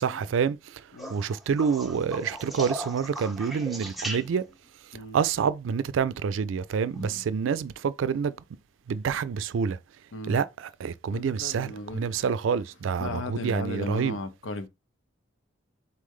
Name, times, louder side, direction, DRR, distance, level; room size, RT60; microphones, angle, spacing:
voice 1, 0.0-4.4 4.8-8.3 8.9-9.8 10.3-14.2, right 6 dB, 80° right, 0.3 m, -28 dB
sound 1, 1.0-4.7 6.8-7.3 9.0-9.1, right 1 dB, ahead, 0.5 m, -38 dB
voice 2, 11.1-12.2 13.0-14.7, left 2 dB, 85° left, 0.7 m, -36 dB
4.1 x 3.2 x 3.6 m
head